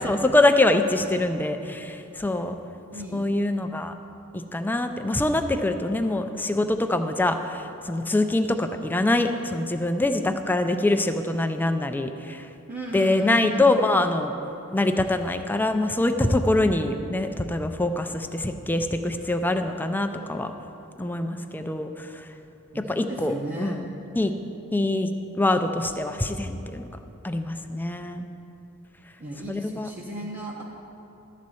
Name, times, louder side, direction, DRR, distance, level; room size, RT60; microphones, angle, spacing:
voice 1, 0.0-2.5 3.1-3.9 4.5-12.5 12.9-14.3 14.7-20.5 21.0-22.1 22.8-23.9 24.2-24.3 24.7-25.1 25.4-26.9 27.2-28.3 29.5-29.9, left 2 dB, 10° left, 7 dB, 0.4 m, -24 dB
voice 2, 2.9-3.3 12.7-13.8 22.7-23.9 29.2-30.6, right 1 dB, 40° right, -4 dB, 0.8 m, -35 dB
12.0 x 4.2 x 7.7 m, 2.9 s
head